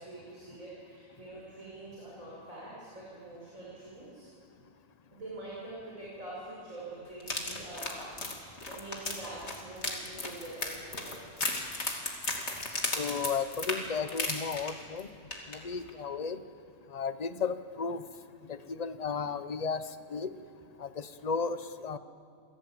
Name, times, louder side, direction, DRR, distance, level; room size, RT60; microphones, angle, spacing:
voice 1, 0.0-4.3 5.1-11.5, right 2 dB, 75° right, -6 dB, 6.9 m, -45 dB
sound 1, 7.2-15.0 15.3-15.6 15.9-16.0, left 2 dB, 55° left, 3.2 m, -35 dB
voice 2, 13.0-15.1 15.5-16.4 16.9-18.0 18.5-19.8 20.1-20.3 20.8-22.0, left 5 dB, 35° left, 11 dB, 0.9 m, -34 dB
28.5 x 19.5 x 8.7 m, 2.5 s
omnidirectional pair, 1.4 m